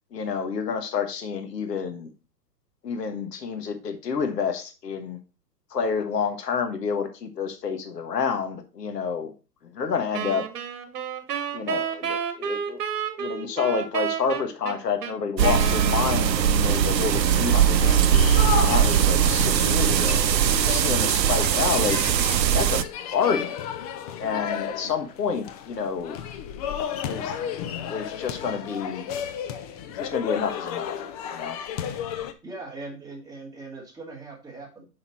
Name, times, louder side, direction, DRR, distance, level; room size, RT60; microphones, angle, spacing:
voice 1, 0.1-2.1 2.8-5.2 5.7-9.3 9.7-10.4 11.5-12.8 13.2-18.1 18.6-20.3 20.6-22.0 22.5-22.8 23.1-23.7 24.2-26.2 27.1-27.5 27.9-29.0 30.0-31.0 31.3-31.6, left 6 dB, 75° left, 7 dB, 1.5 m, -29 dB
Wind instrument woodwind instrument, 10.1-16.7, right 8 dB, 65° right, 1.4 m, -31 dB
sound 1, 15.4-22.8, right 8 dB, 80° right, 0.7 m, -20 dB
sound 2, 16.6-32.3, left 8 dB, 25° left, 0.5 m, -33 dB
voice 2, 32.4-34.9, right 3 dB, 5° right, -2 dB, 2.1 m, -40 dB
6.1 x 5.7 x 4.5 m, 0.32 s
hypercardioid pair, 120°, 50 cm